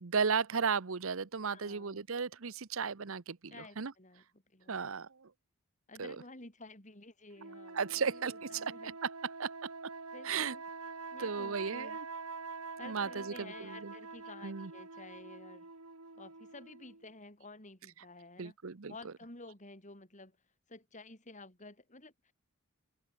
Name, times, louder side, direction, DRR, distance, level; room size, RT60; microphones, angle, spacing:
voice 1, 0.0-3.9 4.7-5.1 6.0-6.1 7.7-8.9 9.4-9.5 10.2-10.6 11.2-12.0 12.8-13.9 14.4-14.7 18.4-18.9, right 5 dB, 60° right, 0.8 m, -35 dB
voice 2, 1.5-2.0 3.5-4.2 4.5-5.0 5.9-9.0 10.1-10.6 11.1-12.0 12.8-15.7 16.1-18.6 18.9-20.3 20.7-22.3, left 2 dB, 35° left, 4.8 m, -52 dB
sound 1, 7.4-17.1, right 4 dB, 85° right, 4.3 m, -46 dB
open air
head